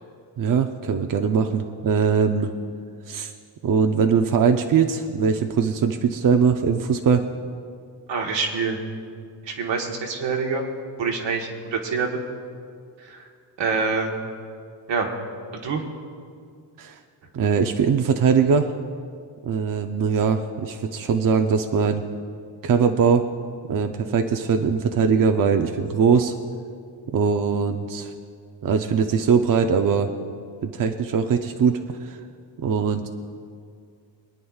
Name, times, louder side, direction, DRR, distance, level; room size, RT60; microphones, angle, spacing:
voice 1, 0.4-2.5 3.1-3.3 3.6-7.3 16.8-17.0 17.3-18.7 19.4-22.0 22.6-23.3 23.7-26.3 27.1-28.1 28.6-30.1 30.6-32.2 32.6-33.1, right 6 dB, 50° right, 5 dB, 0.7 m, -21 dB
voice 2, 8.1-8.8 9.4-10.6 11.0-12.2 13.1-13.2 13.6-14.1 14.9-15.1 15.6-15.8, right 4 dB, 80° right, 1 dB, 1.5 m, -25 dB
25.5 x 9.4 x 2.4 m, 2.2 s
cardioid pair, 95°, 44 cm